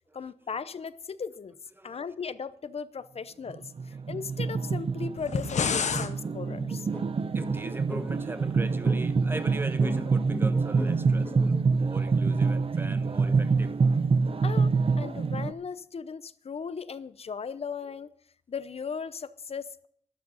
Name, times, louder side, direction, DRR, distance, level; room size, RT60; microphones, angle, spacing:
voice 1, 0.1-1.6 1.8-6.9 14.4-18.1 18.5-19.9, left 6 dB, 60° left, 15 dB, 0.7 m, -37 dB
sound 1, 3.5-15.5, right 4 dB, 55° right, 0.8 m, -26 dB
sound 2, 5.2-6.1, left 6 dB, 85° left, 1.0 m, -28 dB
sound 3, 6.2-11.7, left 1 dB, 15° left, 2.2 m, -40 dB
voice 2, 7.3-13.7, right 1 dB, 20° right, 11 dB, 1.1 m, -40 dB
13.0 x 12.5 x 5.6 m, 0.63 s
wide cardioid pair, 95°, 12 cm